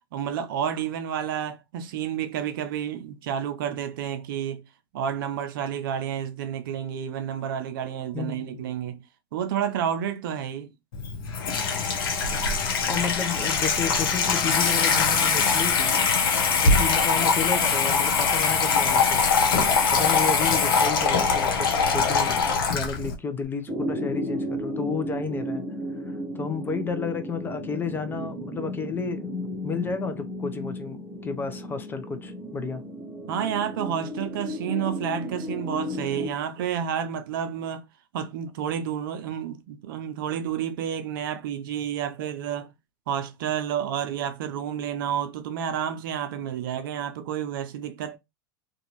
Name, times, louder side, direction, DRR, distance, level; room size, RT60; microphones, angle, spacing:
voice 1, 0.1-4.6 4.9-9.0 9.3-10.7 33.3-37.8 38.1-42.7 43.1-48.2, right 9 dB, 65° right, 0.6 m, -30 dB
voice 2, 8.1-8.6 12.9-16.0 16.6-19.2 19.9-25.6 26.1-32.8, left 5 dB, 15° left, 0.6 m, -32 dB
Water tap faucet / Sink (filling or washing), 10.9-23.1, left 5 dB, 70° left, 0.8 m, -22 dB
sound 1, 23.7-36.3, equal, 15° right, 0.8 m, -34 dB
2.5 x 2.4 x 3.0 m
hypercardioid pair, 95°, 12 cm